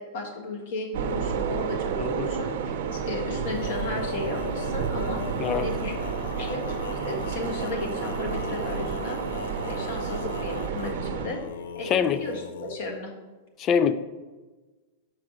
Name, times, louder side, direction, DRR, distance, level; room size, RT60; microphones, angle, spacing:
voice 1, 0.0-5.2 5.6-5.9 6.4-6.6 6.9-9.2 9.7-11.4 11.7-13.1, left 2 dB, 50° left, 2 dB, 1.5 m, -35 dB
sound 1, 0.9-11.3, right 7 dB, 60° right, 0.7 m, -30 dB
voice 2, 2.0-2.3 5.4-5.7 11.8-12.2 13.6-13.9, left 7 dB, 25° left, 13 dB, 0.3 m, -24 dB
Male singing, 3.0-12.8, left 8 dB, 85° left, 0.4 m, -38 dB
6.0 x 4.8 x 6.4 m, 1.3 s
supercardioid pair, 175°, 0 cm